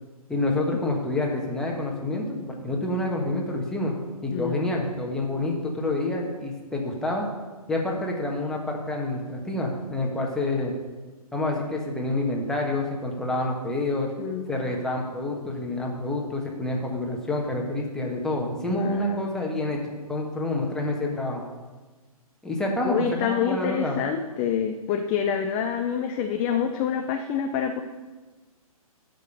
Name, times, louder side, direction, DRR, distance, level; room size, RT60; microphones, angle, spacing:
voice 1, 0.3-4.0 4.2-7.3 7.7-10.7 11.3-14.1 14.5-19.8 20.1-21.4 22.4-24.0, left 2 dB, 5° left, -1 dB, 1.3 m, -28 dB
voice 2, 18.6-19.5 22.8-27.8, left 8 dB, 20° left, 5 dB, 0.5 m, -27 dB
12.5 x 5.3 x 6.6 m, 1.3 s
hypercardioid pair, 140°, 19 cm